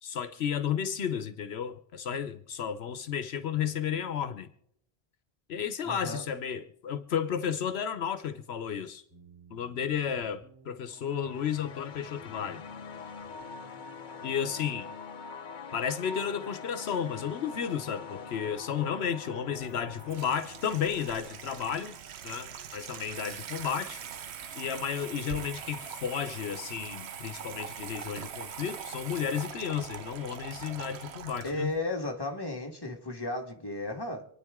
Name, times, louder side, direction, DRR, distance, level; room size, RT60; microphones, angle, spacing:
voice 1, 0.0-4.5 5.5-9.0 9.5-12.6 14.2-14.9 15.7-22.0 22.2-24.0 24.6-31.7, left 8 dB, 80° left, 1.0 m, -33 dB
voice 2, 5.8-6.2 31.4-34.3, left 2 dB, 20° left, 1.7 m, -34 dB
sound 1, 9.1-14.3, right 5 dB, 15° right, 3.3 m, -58 dB
sound 2, 10.9-21.9, left 5 dB, 55° left, 0.8 m, -44 dB
Water tap faucet / Sink (filling or washing), 19.6-31.8, right 8 dB, 90° right, 1.0 m, -42 dB
27.0 x 9.9 x 3.6 m
omnidirectional pair, 1.1 m